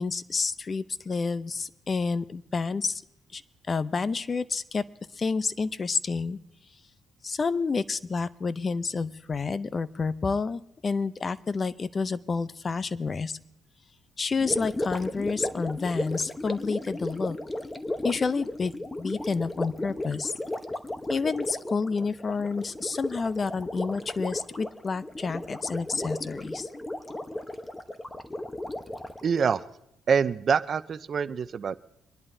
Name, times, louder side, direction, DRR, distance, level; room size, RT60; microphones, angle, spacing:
voice 1, 0.0-3.0 3.3-3.4 3.7-4.8 5.1-6.4 7.2-13.4 14.2-17.4 18.0-18.7 19.0-20.3 21.1-26.7, left 4 dB, 35° left, 16 dB, 0.6 m, -29 dB
Gurgling, 14.4-29.7, left 1 dB, 15° left, 0.9 m, -35 dB
voice 2, 29.2-29.6 30.1-31.8, right 6 dB, 50° right, 14 dB, 0.5 m, -25 dB
25.0 x 11.0 x 2.7 m, 0.80 s
cardioid pair, 90°, 0 cm